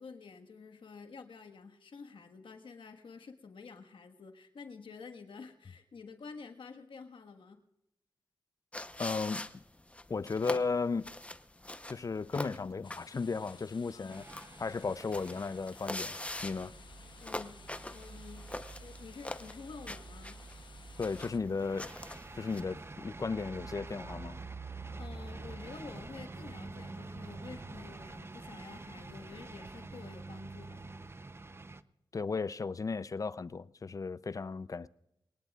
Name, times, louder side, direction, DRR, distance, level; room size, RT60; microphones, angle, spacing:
voice 1, 0.0-7.6 13.9-14.3 16.7-16.8 17.2-17.6 17.8-18.5 18.8-20.5 25.0-30.8, left 5 dB, 85° left, 1.5 m, -49 dB
sound 1, 8.7-22.6, left 1 dB, 15° left, 0.8 m, -44 dB
voice 2, 9.0-9.5 10.1-11.1 11.9-14.2 14.6-16.7 21.0-21.9 22.3-24.4 32.1-34.9, left 4 dB, 45° left, 0.5 m, -35 dB
sound 2, 12.8-21.4, left 5 dB, 70° left, 0.9 m, -57 dB
sound 3, 14.1-31.8, right 3 dB, 30° right, 0.6 m, -47 dB
22.5 x 19.0 x 2.4 m
wide cardioid pair, 75°, 8 cm